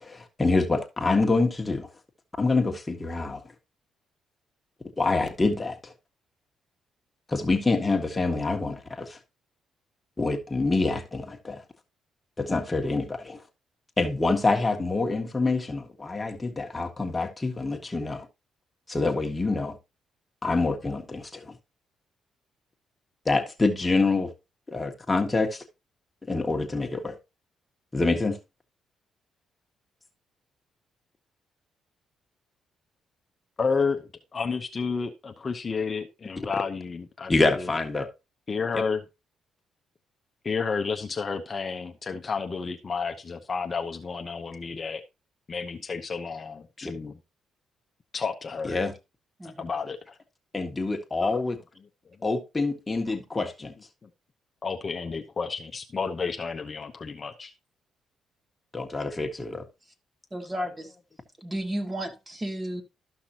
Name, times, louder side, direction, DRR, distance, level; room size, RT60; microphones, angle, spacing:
voice 1, 0.0-1.9 2.4-3.4 5.0-5.9 7.3-9.2 10.2-11.6 12.4-13.4 14.0-18.3 18.9-19.8 20.4-21.5 23.2-24.3 24.7-25.6 26.3-27.2 27.9-28.4 37.3-38.1 38.7-38.8 46.8-46.9 48.6-48.9 50.5-51.6 52.2-53.7 58.7-59.6, left 3 dB, 20° left, 1.6 m, -26 dB
voice 2, 33.6-37.7 38.5-39.0 40.4-45.0 45.5-47.1 48.1-48.8 49.4-50.2 54.6-57.5, left 5 dB, 35° left, 0.8 m, -31 dB
voice 3, 60.3-60.9 61.4-62.8, right 1 dB, 20° right, 1.9 m, -33 dB
13.0 x 5.9 x 2.8 m
cardioid pair, 90°, 0 cm